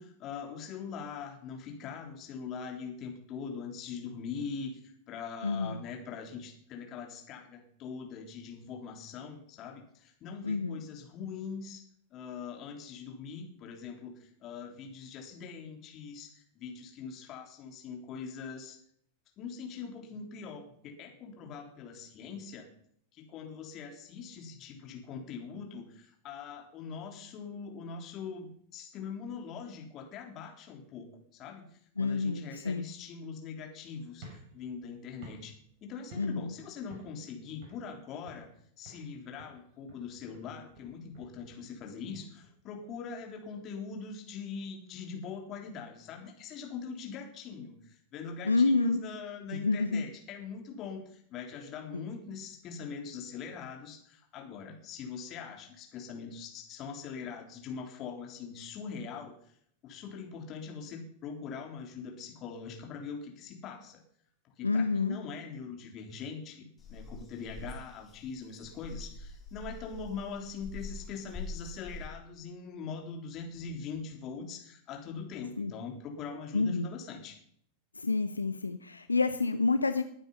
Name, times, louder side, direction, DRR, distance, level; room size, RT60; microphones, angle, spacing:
voice 1, 0.0-11.8 12.1-18.8 19.4-22.7 23.1-31.7 32.0-34.3 34.5-35.5 35.8-38.5 38.8-59.3 59.8-64.0 64.6-77.4, left 5 dB, 35° left, 2 dB, 3.6 m, -42 dB
voice 2, 5.4-5.8 10.4-10.8 32.0-32.9 36.2-36.5 48.4-49.0 49.5-50.0 51.9-52.1 64.6-65.2 75.6-75.7 76.5-76.9 77.9-80.0, left 3 dB, 80° left, 10 dB, 0.7 m, -28 dB
sound 1, 34.1-36.6 36.9-37.3 37.6-38.6 38.9-39.1 39.4-42.5, right 2 dB, 45° right, 6.6 m, -53 dB
sound 2, 66.8-72.1, left 3 dB, 10° left, 4.8 m, -44 dB
20.5 x 9.1 x 5.6 m, 0.66 s
figure-of-eight pair, 90°, 0 cm